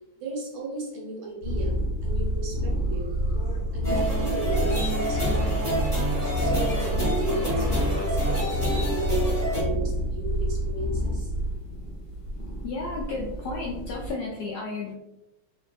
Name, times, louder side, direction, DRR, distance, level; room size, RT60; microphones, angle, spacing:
voice 1, 0.2-1.8 2.0-5.6 6.3-11.3, right 2 dB, 80° right, -2 dB, 1.6 m, -35 dB
sound 1, 1.4-14.1, equal, 55° left, 1.2 m, -28 dB
sound 2, 2.6-8.5, right 1 dB, 45° right, 1.1 m, -46 dB
sound 3, 3.8-9.6, equal, 10° left, 1.0 m, -28 dB
voice 2, 12.6-14.9, left 3 dB, 75° left, -3 dB, 0.9 m, -33 dB
3.3 x 2.6 x 2.2 m, 0.97 s
omnidirectional pair, 2.2 m